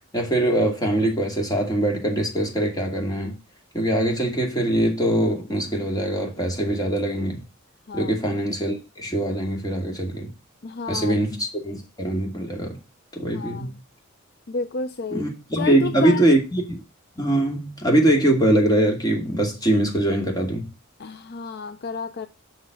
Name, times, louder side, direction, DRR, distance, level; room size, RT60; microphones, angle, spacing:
voice 1, 0.1-3.4 3.7-7.4 7.9-10.3 10.9-12.8 13.1-13.7 15.1-16.8 17.2-20.7, right 1 dB, 20° left, 2.5 m, -22 dB
voice 2, 10.6-11.1 13.3-13.7 14.5-15.2 15.6-16.3 21.0-22.3, left 4 dB, 55° left, 0.5 m, -30 dB
7.6 x 5.8 x 6.4 m
head